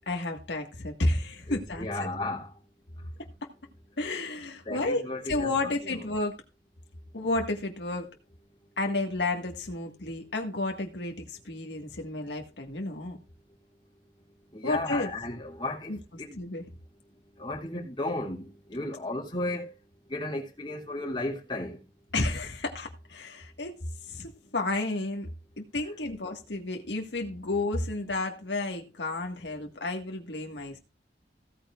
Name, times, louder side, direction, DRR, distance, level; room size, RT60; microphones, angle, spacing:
voice 1, 0.0-1.9 4.0-6.4 7.1-8.1 8.8-13.2 14.6-15.1 15.9-16.0 16.4-16.6 22.1-23.8 24.1-25.3 25.6-30.8, left 2 dB, 80° left, 1.7 m, -31 dB
voice 2, 1.5-2.5 4.6-6.0 14.5-15.9 16.2-16.4 17.4-19.7 20.1-21.8, left 2 dB, 30° left, 3.0 m, -34 dB
16.0 x 9.2 x 2.5 m
head